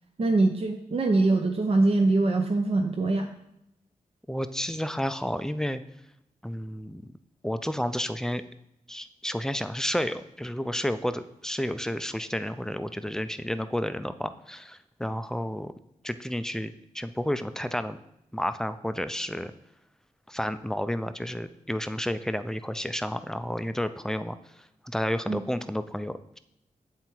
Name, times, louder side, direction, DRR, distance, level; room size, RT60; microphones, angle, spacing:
voice 1, 0.2-3.3 25.3-25.4, right 2 dB, 40° right, 4 dB, 0.6 m, -23 dB
voice 2, 4.3-5.8 6.4-7.1 7.4-8.4 8.9-15.7 16.0-18.0 18.3-19.5 20.3-24.4 24.8-26.4, equal, 5° left, 11 dB, 0.4 m, -31 dB
7.7 x 3.5 x 4.4 m, 0.80 s
cardioid pair, 45°, 15 cm